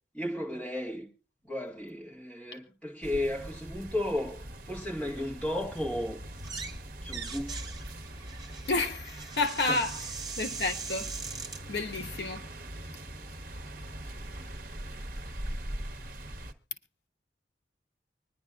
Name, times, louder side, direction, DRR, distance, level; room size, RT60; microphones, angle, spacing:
voice 1, 0.1-1.1 1.4-6.2 7.0-7.7 9.7-9.8, left 1 dB, 5° left, 2.0 m, -34 dB
sound 1, 3.0-16.5, right 1 dB, 50° right, 1.1 m, -42 dB
sound 2, 6.3-6.8 7.0-11.6, right 5 dB, 20° right, 1.4 m, -41 dB
voice 2, 8.7-10.0 10.4-11.4 11.7-12.5, left 3 dB, 75° left, 1.3 m, -31 dB
25.0 x 10.5 x 2.4 m
head